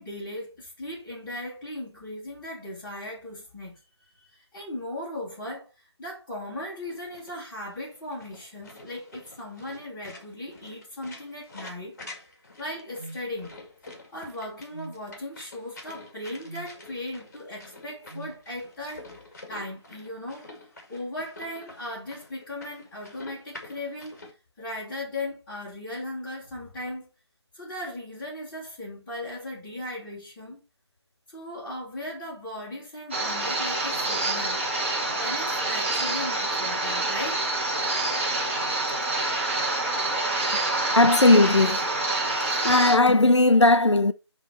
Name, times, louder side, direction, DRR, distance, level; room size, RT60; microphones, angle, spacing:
voice 1, 0.0-3.8 4.1-12.0 12.6-13.5 14.1-20.5 20.9-24.2 24.6-27.1 27.5-30.6 31.3-34.6 35.1-37.5, left 1 dB, 5° left, 2.8 m, -37 dB
sound 1, 6.9-24.3, left 2 dB, 35° left, 2.0 m, -47 dB
sound 2, 13.0-13.2 14.7-15.0 16.4-16.7 18.1-18.4, right 2 dB, 45° right, 1.3 m, -41 dB
sound 3, 33.1-43.0, right 2 dB, 25° right, 1.6 m, -27 dB
voice 2, 40.9-41.8 42.6-44.1, left 2 dB, 80° left, 0.7 m, -17 dB
10.5 x 3.5 x 4.1 m
figure-of-eight pair, 160°, 15 cm